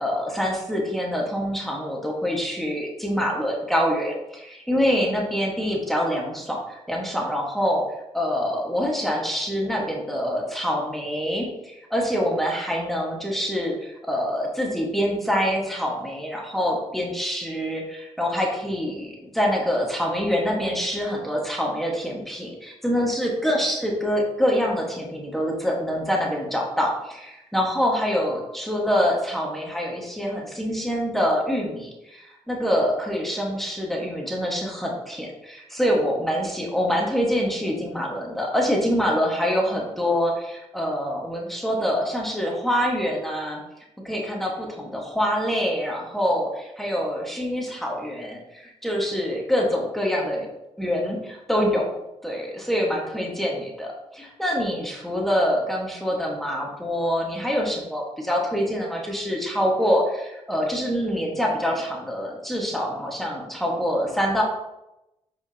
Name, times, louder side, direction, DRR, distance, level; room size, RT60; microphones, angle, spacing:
voice 1, 0.0-7.8 8.1-43.6 44.0-50.5 50.8-51.9 52.2-64.4, equal, ahead, -2 dB, 1.6 m, -25 dB
8.0 x 5.0 x 2.9 m, 0.90 s
cardioid pair, 95°, 12 cm